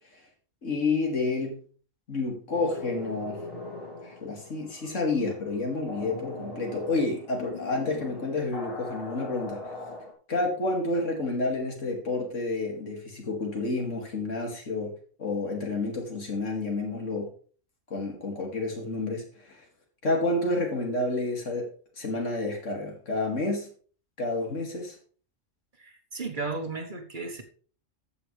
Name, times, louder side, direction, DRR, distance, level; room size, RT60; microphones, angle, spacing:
voice 1, 0.6-1.6 2.1-3.4 4.0-9.6 10.3-14.9 15.2-17.3 17.9-19.6 20.0-21.7 22.0-23.7 24.2-25.0, left 2 dB, 75° left, 1 dB, 2.7 m, -29 dB
sound 1, 2.5-10.1, left 2 dB, 25° left, 2.4 m, -41 dB
voice 2, 25.8-27.4, right 3 dB, 40° right, 5 dB, 1.3 m, -34 dB
14.0 x 6.3 x 3.3 m, 0.42 s
omnidirectional pair, 1.3 m